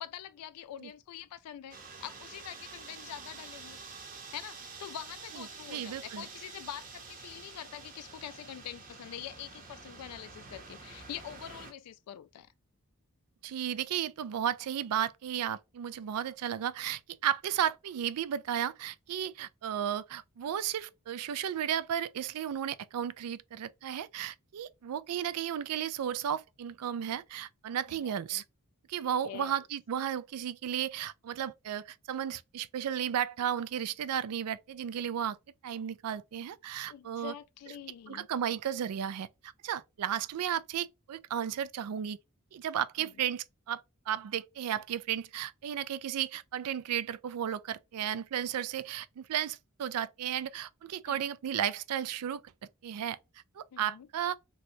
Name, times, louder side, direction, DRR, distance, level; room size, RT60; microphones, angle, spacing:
voice 1, 0.0-3.8 4.3-12.5 27.9-28.4 29.2-29.6 36.9-38.3 43.0-43.1 51.1-51.2 53.7-54.1, left 10 dB, 85° left, 0.3 m, -45 dB
sound 1, 1.7-11.7, right 4 dB, 40° right, 0.8 m, -48 dB
voice 2, 5.7-6.3 13.4-28.4 28.9-35.4 35.6-37.3 38.1-42.2 42.5-52.4 52.8-53.2 53.6-54.4, right 9 dB, 80° right, 0.3 m, -34 dB
3.1 x 2.8 x 2.7 m
head